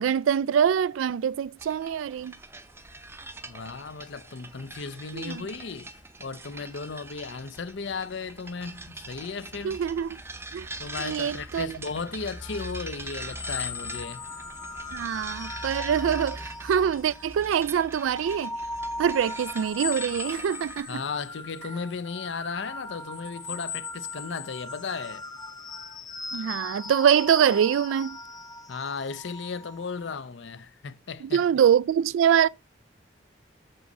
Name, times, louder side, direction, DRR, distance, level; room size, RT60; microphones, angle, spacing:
voice 1, 0.0-2.3 5.1-5.3 9.6-10.2 10.5-10.7 11.0-11.7 14.9-18.5 19.0-21.0 26.3-28.2 31.3-32.5, right 8 dB, 85° right, 0.3 m, -24 dB
sound 1, 1.6-20.8, right 2 dB, 15° right, 0.6 m, -42 dB
voice 2, 3.4-9.8 10.8-14.3 20.9-25.3 28.7-31.5, left 5 dB, 70° left, 0.6 m, -35 dB
sound 2, 12.2-17.4 17.9-30.2, left 3 dB, 20° left, 0.8 m, -38 dB
6.7 x 5.5 x 5.4 m
head